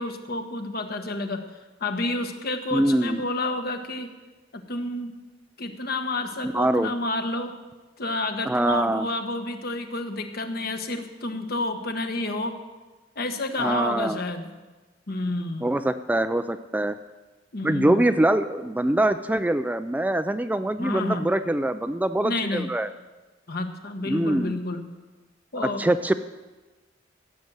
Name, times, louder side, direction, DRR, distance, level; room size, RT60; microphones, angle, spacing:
voice 1, 0.0-1.4 1.8-4.1 4.5-5.2 5.6-7.6 8.0-12.6 13.2-14.5 15.1-15.7 17.5-18.0 20.8-21.3 22.2-22.7 23.5-24.9 25.5-25.8, left 2 dB, 55° left, 6 dB, 1.3 m, -29 dB
voice 2, 2.7-3.2 6.4-6.9 8.5-9.1 13.6-14.2 15.6-17.0 17.6-22.9 24.1-24.6 25.6-26.1, right 1 dB, 10° right, 10 dB, 0.3 m, -24 dB
15.5 x 7.6 x 8.0 m, 1.2 s
head